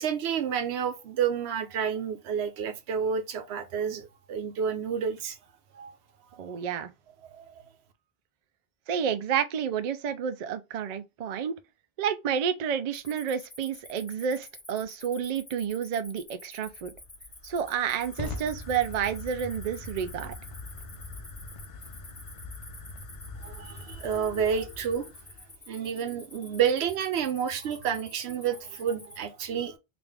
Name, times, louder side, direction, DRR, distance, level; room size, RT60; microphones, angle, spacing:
voice 1, 0.0-5.4 5.7-5.9 7.3-7.6 23.4-25.1 25.7-29.8, right 7 dB, 90° right, 0.9 m, -30 dB
voice 2, 6.4-6.9 8.9-11.6 12.0-16.9 17.4-20.4, right 8 dB, 55° right, 0.5 m, -30 dB
Cricket, 12.9-29.2, left 2 dB, 25° left, 1.0 m, -49 dB
Fire, 16.6-25.6, left 2 dB, 45° left, 0.4 m, -42 dB
3.4 x 2.5 x 3.4 m
omnidirectional pair, 1.0 m